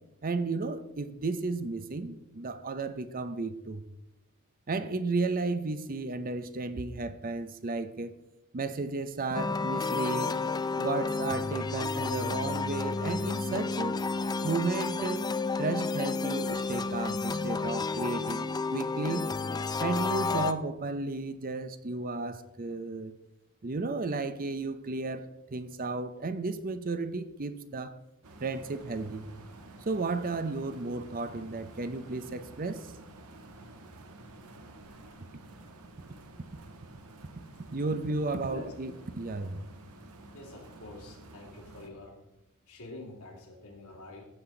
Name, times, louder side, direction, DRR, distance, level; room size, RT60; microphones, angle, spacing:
voice 1, 0.2-3.9 4.7-8.1 8.5-10.3 10.7-14.0 14.4-15.3 15.6-19.3 19.8-23.1 23.6-28.0 28.4-29.3 29.8-32.9 37.7-39.6, right 3 dB, 40° right, 12 dB, 0.6 m, -33 dB
sound 1, 9.3-20.5, left 4 dB, 20° left, 0.3 m, -31 dB
sound 2, 28.2-41.9, right 2 dB, 85° right, 1.2 m, -51 dB
voice 2, 40.3-42.2 42.7-44.3, left 2 dB, 85° left, -1 dB, 2.7 m, -46 dB
14.0 x 7.6 x 3.8 m, 0.93 s
head